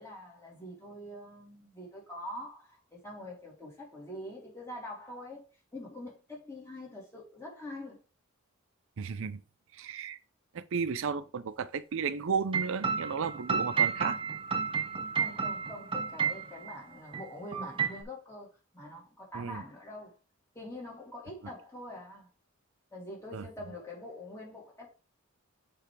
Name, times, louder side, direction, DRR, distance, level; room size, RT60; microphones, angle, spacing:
voice 1, 0.0-8.0 15.2-18.5 18.7-20.1 20.5-22.3 22.9-24.9, left 1 dB, 15° left, 2.5 m, -44 dB
voice 2, 9.0-9.4 9.7-10.2 10.5-14.2 19.3-19.6 23.3-23.5, right 5 dB, 65° right, 0.5 m, -34 dB
sound 1, 12.5-16.7 17.1-17.2 17.5-18.0, right 6 dB, 25° right, 0.6 m, -31 dB
8.1 x 3.6 x 3.2 m
head